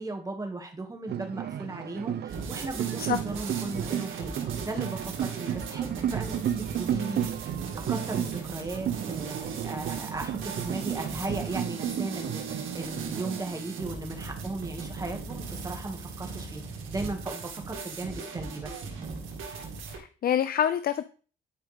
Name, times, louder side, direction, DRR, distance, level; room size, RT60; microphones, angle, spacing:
voice 1, 0.0-4.3 4.6-7.6 7.9-18.7, right 2 dB, 15° right, 2 dB, 2.0 m, -37 dB
sound 1, 1.1-13.4, right 10 dB, 55° right, 0.5 m, -33 dB
sound 2, 2.3-20.0, right 4 dB, 85° right, 2.0 m, -38 dB
voice 2, 19.9-21.0, left 9 dB, 50° left, 13 dB, 0.5 m, -27 dB
11.0 x 4.8 x 3.5 m, 0.39 s
cardioid pair, 90°, 20 cm